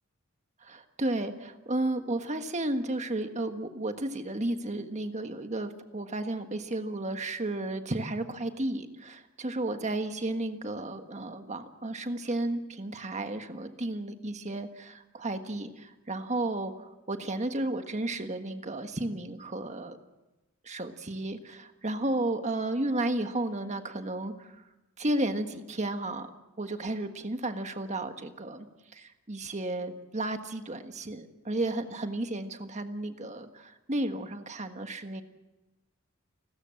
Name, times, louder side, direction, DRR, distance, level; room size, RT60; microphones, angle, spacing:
voice 1, 0.6-20.0 20.6-24.6 25.0-26.3 26.6-28.7 28.9-35.2, right 2 dB, 35° right, 7 dB, 1.5 m, -33 dB
30.0 x 13.0 x 7.7 m, 1.0 s
head